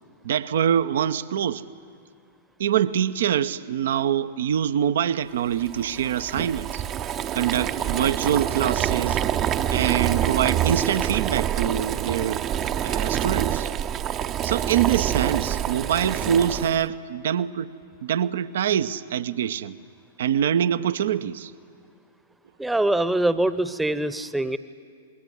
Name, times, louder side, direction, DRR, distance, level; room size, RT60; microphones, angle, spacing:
voice 1, 0.2-1.6 2.6-6.8 7.3-9.2 9.7-12.4 12.8-13.7 14.4-17.7 18.0-19.7 20.2-21.5, right 9 dB, 65° right, 0.8 m, -24 dB
Boiling, 5.6-16.9, right 10 dB, 30° right, 0.8 m, -26 dB
voice 2, 22.6-24.6, right 1 dB, 5° right, 1.0 m, -23 dB
27.0 x 21.0 x 9.8 m
figure-of-eight pair, 105°, 0 cm